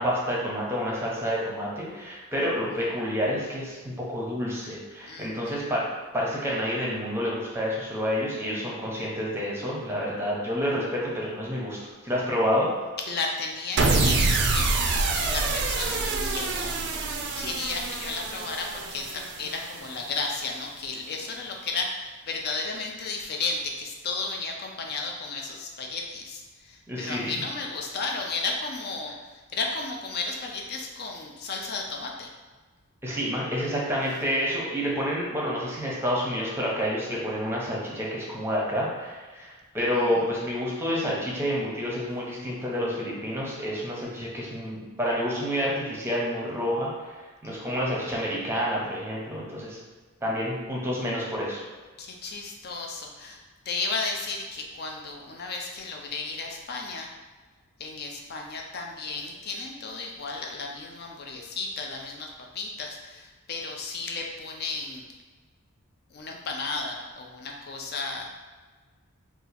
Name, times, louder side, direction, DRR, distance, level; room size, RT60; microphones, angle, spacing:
voice 1, 0.0-5.8 6.1-11.8 12.0-12.7 26.9-27.4 33.0-47.1 47.4-49.8 50.2-51.6, equal, 10° right, -5 dB, 0.7 m, -29 dB
voice 2, 5.1-5.6 13.1-16.8 17.4-29.1 29.5-32.3 40.0-40.2 47.4-47.7 52.0-53.4 53.7-57.1 57.8-65.0 66.1-68.3, left 3 dB, 50° left, 1 dB, 0.5 m, -34 dB
sound 1, 13.8-20.1, right 3 dB, 55° right, 0.4 m, -26 dB
2.8 x 2.4 x 4.1 m, 1.4 s
head